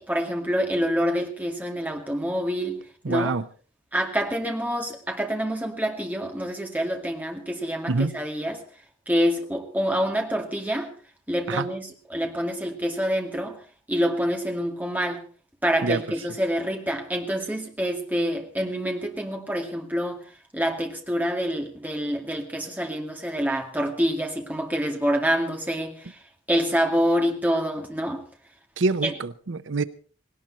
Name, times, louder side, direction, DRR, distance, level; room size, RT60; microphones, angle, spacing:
voice 1, 0.0-2.8 3.1-3.3 3.9-8.6 9.1-10.9 11.3-13.6 13.9-15.2 15.6-20.2 20.5-26.2 26.5-28.2 29.0-29.2, equal, 10° right, 2.2 m, -26 dB
voice 2, 3.1-3.4 7.9-8.1 11.5-11.6 15.8-16.0 28.8-29.8, right 3 dB, 80° right, 0.7 m, -25 dB
18.0 x 18.0 x 4.3 m
head